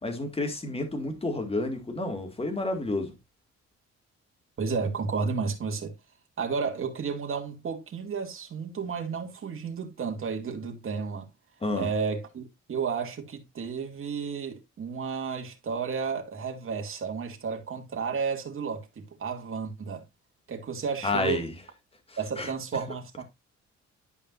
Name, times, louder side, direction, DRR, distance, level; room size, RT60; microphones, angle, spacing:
voice 1, 0.0-3.1 11.6-11.9 21.0-21.5 22.4-22.5, left 2 dB, 20° left, 2.2 m, -30 dB
voice 2, 4.6-5.9 6.4-11.3 11.7-20.1 20.5-21.4 22.2-23.2, right 5 dB, 45° right, 2.2 m, -32 dB
11.0 x 5.2 x 2.6 m
cardioid pair, 90°, 30 cm